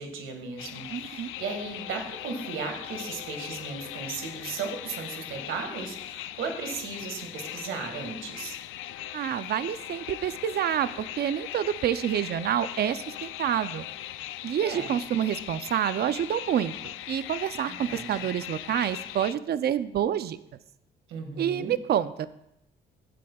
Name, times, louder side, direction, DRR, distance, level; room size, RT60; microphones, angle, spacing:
voice 1, 0.0-8.6 14.6-14.9 17.7-18.3 21.1-21.7, right 5 dB, 85° right, 4 dB, 1.8 m, -36 dB
sound 1, 0.6-19.3, left 13 dB, 90° left, 0.4 m, -39 dB
voice 2, 0.9-1.3 9.1-13.9 14.4-16.7 17.1-20.4 21.4-22.3, right 10 dB, 55° right, 14 dB, 0.5 m, -28 dB
14.5 x 8.5 x 2.3 m, 0.81 s
cardioid pair, 90°, 20 cm